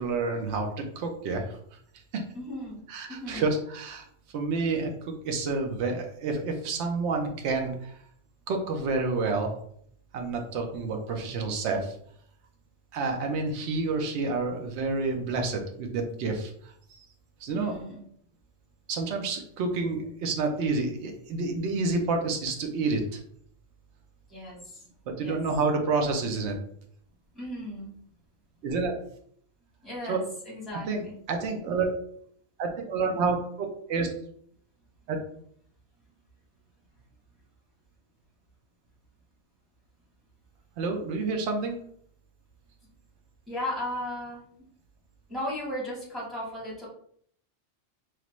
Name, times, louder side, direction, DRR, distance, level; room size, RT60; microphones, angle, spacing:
voice 1, 0.0-1.6 2.1-2.2 2.9-4.0 4.3-8.0 8.5-9.5 10.1-12.0 12.9-17.1 17.4-17.8 18.9-23.2 25.1-26.6 28.6-28.9 30.1-30.2 30.9-32.0 32.6-34.1 35.1-35.2 40.8-41.8, right 3 dB, 75° right, 3 dB, 0.9 m, -29 dB
voice 2, 2.3-2.8 3.1-3.5 17.5-18.0 24.3-24.8 25.2-25.4 27.3-27.9 29.8-31.1 43.5-44.5 45.3-46.9, left 1 dB, ahead, -5 dB, 1.0 m, -36 dB
3.1 x 2.4 x 3.0 m, 0.64 s
omnidirectional pair, 1.2 m